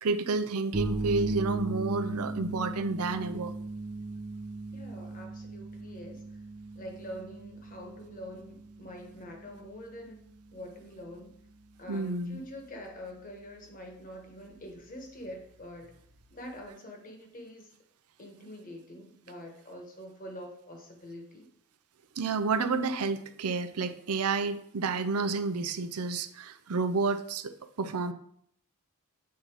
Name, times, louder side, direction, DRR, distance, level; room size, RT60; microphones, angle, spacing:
voice 1, 0.0-3.5 11.9-12.4 22.2-27.5 27.8-28.1, right 4 dB, 85° right, 9 dB, 0.6 m, -30 dB
sound 1, 0.7-16.7, right 2 dB, 40° right, 0.6 m, -39 dB
voice 2, 4.7-6.2 6.7-10.2 10.5-11.4 11.8-16.0 16.3-17.7 18.2-21.5, equal, 40° left, 2 dB, 1.3 m, -45 dB
8.4 x 4.1 x 4.6 m, 0.67 s
head